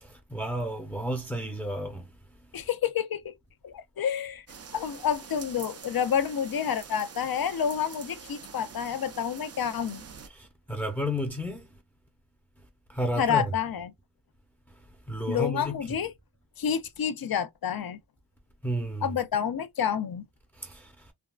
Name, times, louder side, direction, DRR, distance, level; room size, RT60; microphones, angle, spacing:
voice 1, 0.0-2.1 10.3-11.7 12.9-13.5 15.1-16.0 18.6-19.1 20.6-21.1, equal, 5° left, 0.7 m, -32 dB
voice 2, 2.5-3.3 3.6-4.4 4.7-10.0 13.2-13.9 15.3-16.1 16.6-18.0 19.0-20.3, left 8 dB, 60° left, 0.6 m, -29 dB
sound 1, 4.5-10.3, right 6 dB, 40° right, 0.5 m, -45 dB
3.5 x 2.3 x 2.3 m
wide cardioid pair, 110°, 41 cm